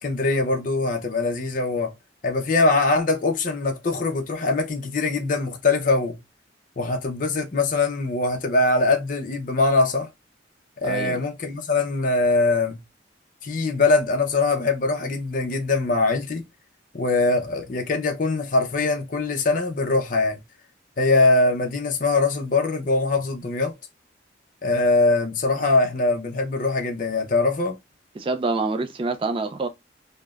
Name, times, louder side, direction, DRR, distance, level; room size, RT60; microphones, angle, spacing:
voice 1, 0.0-1.9 2.2-6.2 6.8-10.1 10.8-12.8 13.4-16.4 16.9-20.4 21.0-23.7 24.6-27.8, left 3 dB, 45° left, 0.5 m, -22 dB
voice 2, 10.8-11.2 28.2-29.7, right 3 dB, 30° right, 0.3 m, -26 dB
3.1 x 2.1 x 2.3 m
head